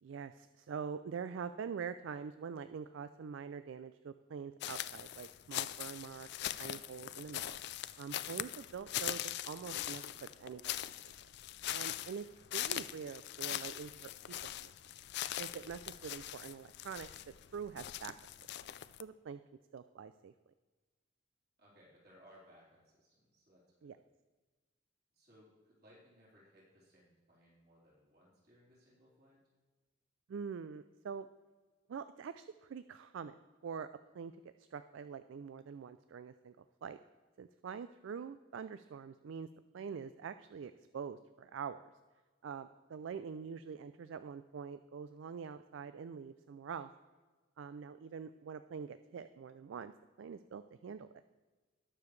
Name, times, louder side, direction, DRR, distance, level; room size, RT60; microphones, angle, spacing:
voice 1, 0.0-6.3 6.5-7.6 8.0-10.1 10.4-11.1 11.7-12.2 12.5-14.1 14.4-14.7 15.4-17.1 17.5-18.1 19.0-19.4 19.7-20.3 23.8-24.0 30.3-31.3 31.9-33.3 33.6-33.9 34.1-34.3 34.6-37.0 37.4-39.5 39.7-41.8 42.4-46.9 47.6-49.9 50.2-51.1, right 6 dB, 75° right, 12 dB, 0.4 m, -45 dB
sound 1, 4.6-19.0, left 13 dB, 60° left, 0.3 m, -41 dB
voice 2, 21.6-24.0 25.1-29.4 42.9-43.2, equal, 55° right, -6 dB, 3.9 m, -64 dB
18.5 x 6.9 x 3.2 m, 1.3 s
head